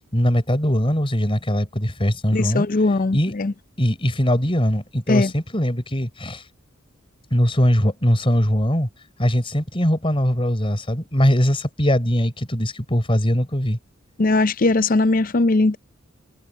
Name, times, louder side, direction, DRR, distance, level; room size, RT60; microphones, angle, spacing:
voice 1, 0.1-2.7 3.1-3.3 3.8-6.4 7.3-8.9 9.2-13.8, equal, 25° left, 4.1 m, -21 dB
voice 2, 2.3-3.5 5.1-5.3 14.2-15.8, left 2 dB, 45° left, 0.6 m, -19 dB
head